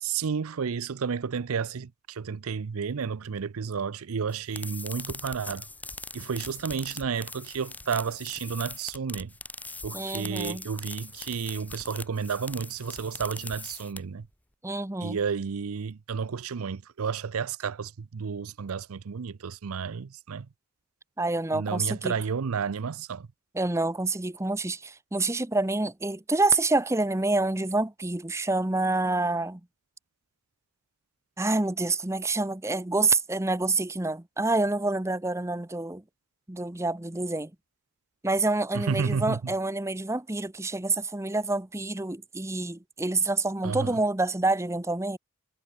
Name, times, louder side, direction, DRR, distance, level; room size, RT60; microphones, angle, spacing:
voice 1, 0.0-5.7 6.1-9.3 9.8-14.3 15.0-20.5 21.5-23.3 38.7-39.4 43.6-44.0, right 6 dB, 75° right, 0.5 m, -31 dB
sound 1, 4.3-14.3, left 3 dB, 5° left, 1.5 m, -41 dB
voice 2, 9.9-10.6 14.6-15.2 21.2-22.1 23.5-29.6 31.4-36.0 36.5-37.5 38.2-45.2, right 2 dB, 10° right, 0.8 m, -27 dB
head